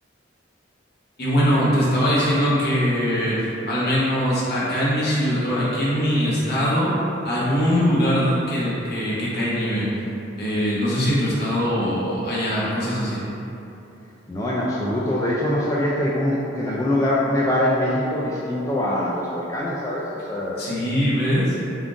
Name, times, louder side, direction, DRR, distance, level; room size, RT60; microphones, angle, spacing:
voice 1, 1.2-7.0 7.2-9.9 10.4-13.2 20.6-21.6, equal, 60° left, -8 dB, 1.0 m, -22 dB
voice 2, 14.3-20.6, left 1 dB, 15° left, -7 dB, 0.3 m, -23 dB
3.6 x 2.5 x 3.6 m, 2.9 s
head